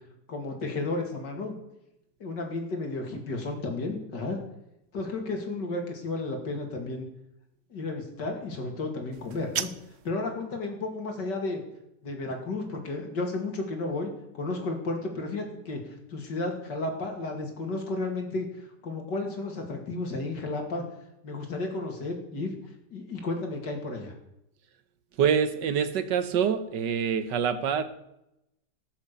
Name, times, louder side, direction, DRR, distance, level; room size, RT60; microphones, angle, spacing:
voice 1, 0.3-1.5 2.2-4.4 4.9-7.1 7.7-9.7 10.0-11.6 12.0-20.8 21.2-22.6 22.9-24.1, left 2 dB, 80° left, 3 dB, 3.0 m, -33 dB
sound 1, 9.1-10.1, right 9 dB, 60° right, 0.7 m, -35 dB
voice 2, 25.2-27.8, right 7 dB, 85° right, 11 dB, 1.7 m, -25 dB
18.5 x 7.2 x 6.9 m, 0.84 s
omnidirectional pair, 1.8 m